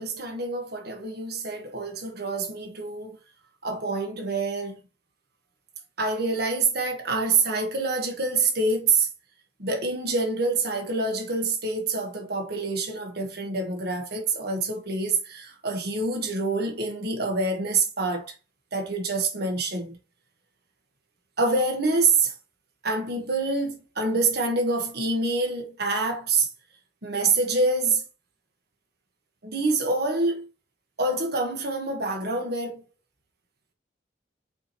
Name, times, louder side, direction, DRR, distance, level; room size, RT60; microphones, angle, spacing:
voice 1, 0.0-3.2 3.6-4.8 6.0-9.1 9.6-18.3 18.7-20.0 21.4-22.3 22.8-26.5 27.0-28.0 29.4-30.5 31.0-32.8, right 3 dB, 60° right, 1.5 m, -26 dB
7.5 x 4.4 x 3.0 m
head